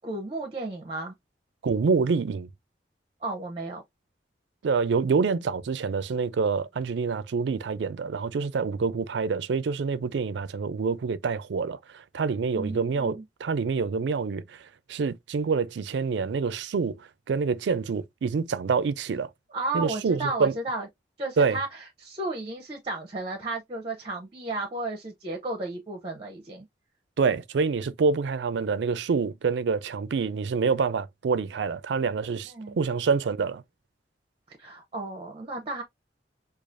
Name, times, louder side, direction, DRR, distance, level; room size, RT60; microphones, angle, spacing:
voice 1, 0.0-1.1 3.2-3.8 12.5-13.2 19.5-20.9 21.2-26.7 32.5-32.8 34.5-35.8, right 2 dB, 30° right, 0.6 m, -33 dB
voice 2, 1.6-2.5 4.6-19.3 19.7-20.5 21.4-21.6 27.2-33.6, right 5 dB, 70° right, 0.4 m, -27 dB
4.7 x 2.4 x 2.4 m
head